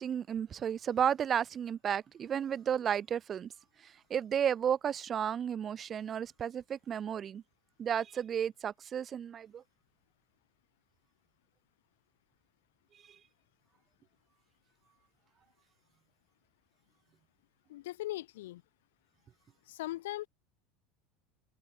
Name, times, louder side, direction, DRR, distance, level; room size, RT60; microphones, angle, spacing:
voice 1, 0.0-3.5 4.1-7.4 7.8-9.6, right 8 dB, 30° right, 2.2 m, -33 dB
voice 2, 17.7-18.6 19.7-20.3, left 16 dB, 90° left, 3.5 m, -39 dB
open air
supercardioid pair, 130°, 0 cm